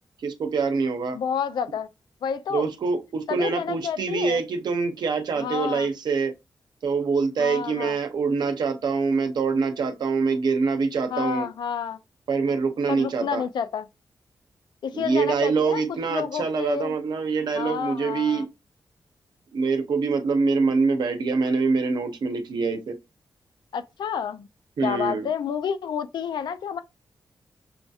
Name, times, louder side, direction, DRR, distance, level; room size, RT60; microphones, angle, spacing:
voice 1, 0.2-1.2 2.5-6.3 6.8-11.5 12.3-13.4 14.9-18.5 19.5-23.0 24.8-25.3, right 4 dB, 75° right, 0.7 m, -25 dB
voice 2, 1.1-1.9 2.2-2.7 3.3-4.4 5.3-5.9 7.4-8.0 11.1-12.0 12.9-13.9 14.8-15.8 16.1-17.0 17.5-18.4 23.7-24.5 24.8-26.8, left 7 dB, 85° left, 0.4 m, -29 dB
5.8 x 2.6 x 2.3 m
cardioid pair, 60°, 7 cm